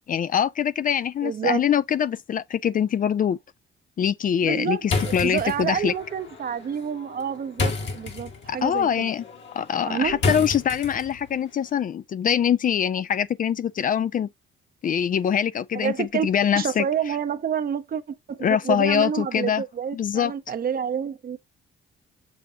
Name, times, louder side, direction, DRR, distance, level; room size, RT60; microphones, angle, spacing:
voice 1, 0.1-3.4 4.0-5.9 8.5-9.2 9.5-14.3 14.8-16.8 18.4-19.6 19.9-20.3, left 8 dB, 45° left, 0.4 m, -23 dB
voice 2, 1.2-1.6 4.4-9.1 9.8-10.2 15.7-16.3 16.5-21.4, right 7 dB, 50° right, 0.8 m, -28 dB
sound 1, 4.8-11.3, left 4 dB, 65° left, 2.1 m, -31 dB
7.1 x 5.1 x 2.7 m
cardioid pair, 90°, 20 cm